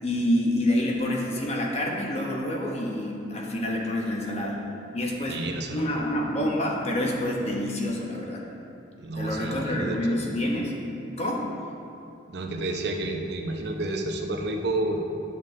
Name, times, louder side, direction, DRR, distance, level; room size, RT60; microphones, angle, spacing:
voice 1, 0.0-4.6 4.9-5.4 5.7-8.4 9.1-10.8 11.2-11.5, left 1 dB, 35° left, -1 dB, 1.0 m, -27 dB
voice 2, 5.3-6.0 9.0-10.2 12.3-15.0, right 2 dB, 60° right, 2 dB, 0.7 m, -30 dB
10.5 x 6.9 x 3.3 m, 2.7 s
head